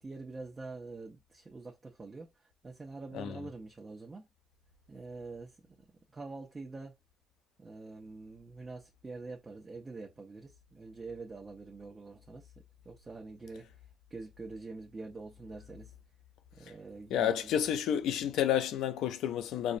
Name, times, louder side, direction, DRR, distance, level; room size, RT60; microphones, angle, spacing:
voice 1, 0.0-4.3 4.9-7.0 7.6-12.5 12.8-13.7 14.1-15.9 16.6-17.6, right 3 dB, 30° right, 0.8 m, -45 dB
voice 2, 17.1-19.8, left 9 dB, 85° left, 0.4 m, -30 dB
5.3 x 2.1 x 2.6 m
cardioid pair, 90°, 0 cm